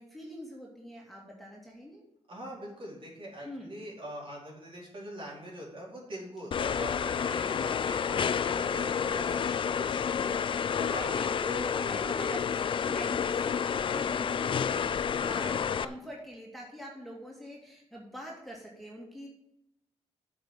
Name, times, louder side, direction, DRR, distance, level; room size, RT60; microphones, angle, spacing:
voice 1, 0.0-2.0 3.4-3.7 7.3-7.6 10.7-19.3, equal, ahead, -3 dB, 2.4 m, -44 dB
voice 2, 2.3-11.1 11.4-11.9 15.1-16.0, equal, 50° right, -3 dB, 4.4 m, -42 dB
sound 1, 6.5-15.8, left 7 dB, 50° left, 0.4 m, -30 dB
8.8 x 5.5 x 8.0 m, 0.83 s
cardioid pair, 100°, 11 cm